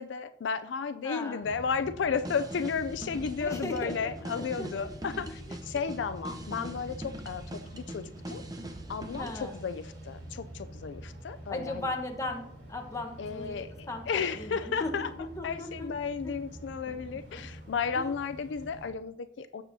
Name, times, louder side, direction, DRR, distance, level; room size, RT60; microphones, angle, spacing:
voice 1, 0.0-7.4 7.7-8.4 8.9-11.9 13.2-15.1 15.4-19.6, left 6 dB, 75° left, 11 dB, 0.4 m, -33 dB
voice 2, 1.0-1.4 3.4-4.7 5.0-5.1 5.5-5.6 9.2-9.6 11.5-12.4 12.7-13.6 13.9-15.9 16.9-17.0 17.3-17.4 17.9-18.1, left 2 dB, 15° left, 3 dB, 1.1 m, -37 dB
sound 1, 1.4-18.9, right 1 dB, 80° right, 3.2 m, -46 dB
sound 2, 2.1-9.6, right 1 dB, 20° right, 0.8 m, -42 dB
16.0 x 6.9 x 2.7 m, 0.77 s
head